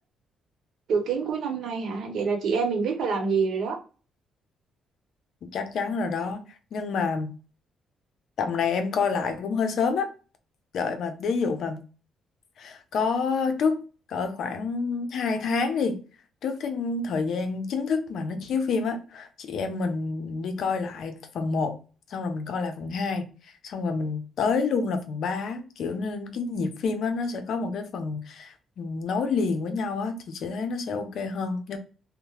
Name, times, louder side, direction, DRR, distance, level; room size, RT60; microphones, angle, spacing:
voice 1, 0.9-3.8, right 5 dB, 70° right, 0.9 m, -26 dB
voice 2, 5.5-7.3 8.4-10.1 10.7-11.8 12.6-13.8 14.1-16.0 16.4-21.8 22.1-23.3 23.6-31.8, left 4 dB, 70° left, 0.5 m, -28 dB
2.8 x 2.1 x 2.8 m
cardioid pair, 90°, 0 cm